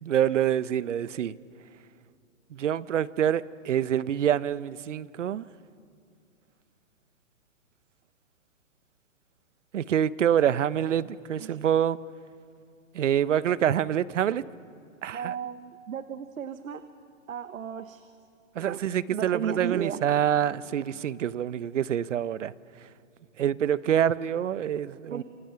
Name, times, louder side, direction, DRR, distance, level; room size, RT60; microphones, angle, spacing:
voice 1, 0.0-1.3 2.5-5.4 9.7-12.0 12.9-14.4 15.0-15.3 18.6-22.5 23.4-25.2, right 10 dB, 65° right, 0.8 m, -26 dB
voice 2, 15.1-16.9 17.3-18.1 18.6-18.8 19.1-20.0 25.1-25.2, right 8 dB, 85° right, 1.2 m, -34 dB
27.5 x 27.0 x 5.8 m
hypercardioid pair, 170°, 39 cm